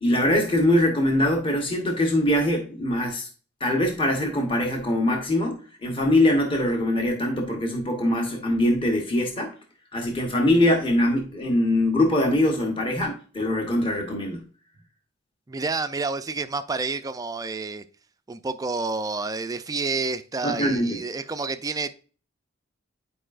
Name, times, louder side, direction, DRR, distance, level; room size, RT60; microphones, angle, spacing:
voice 1, 0.0-3.3 3.6-9.5 9.9-14.4 20.4-21.0, left 1 dB, 25° left, 1.1 m, -23 dB
voice 2, 15.5-17.8 18.3-21.9, right 4 dB, 20° right, 0.4 m, -29 dB
9.9 x 4.8 x 2.4 m
head